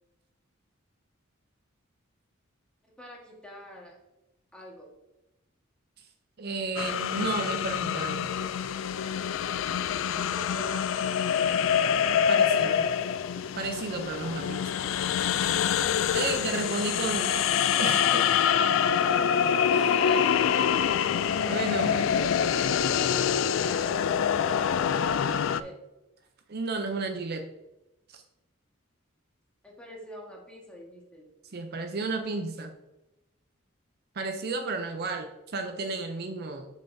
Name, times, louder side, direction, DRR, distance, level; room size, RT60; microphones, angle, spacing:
voice 1, 2.8-4.0 4.5-4.9 10.1-11.7 19.8-21.0 21.7-23.3 24.2-25.8 29.6-31.2, equal, 5° left, -2 dB, 1.5 m, -45 dB
voice 2, 6.4-8.3 12.3-12.9 13.5-14.7 16.1-18.3 19.7-19.9 21.5-22.1 26.5-27.5 28.1-28.2 31.5-32.7 34.1-36.7, right 3 dB, 50° right, 5 dB, 0.6 m, -33 dB
sound 1, 6.8-25.6, left 8 dB, 70° left, 0.3 m, -26 dB
6.5 x 6.4 x 2.7 m, 0.96 s
head